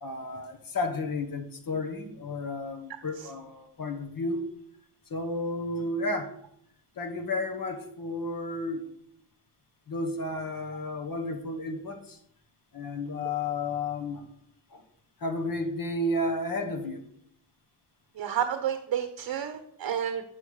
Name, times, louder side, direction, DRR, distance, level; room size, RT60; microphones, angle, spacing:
voice 1, 0.0-4.5 5.1-6.3 7.0-8.9 9.9-12.2 12.7-14.2 14.7-14.8 15.2-17.0, left 2 dB, 45° left, 6 dB, 1.5 m, -32 dB
voice 2, 18.2-20.2, right 9 dB, 50° right, 9 dB, 0.9 m, -30 dB
7.8 x 6.9 x 6.5 m, 0.72 s
cardioid pair, 125°, 46 cm